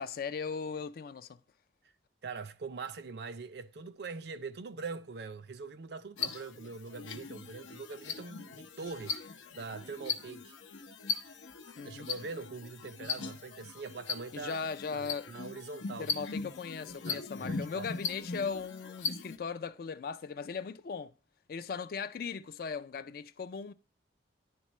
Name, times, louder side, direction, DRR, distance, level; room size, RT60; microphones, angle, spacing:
voice 1, 0.0-1.4 11.8-12.1 14.3-15.3 16.0-21.1 21.5-23.7, left 5 dB, 50° left, 0.3 m, -38 dB
voice 2, 2.2-9.2 9.5-10.6 11.8-14.6 14.9-16.1 17.1-17.9, right 4 dB, 60° right, 0.4 m, -43 dB
sound 1, 6.2-19.4, left 5 dB, 90° left, 0.7 m, -39 dB
10.5 x 3.6 x 3.0 m
head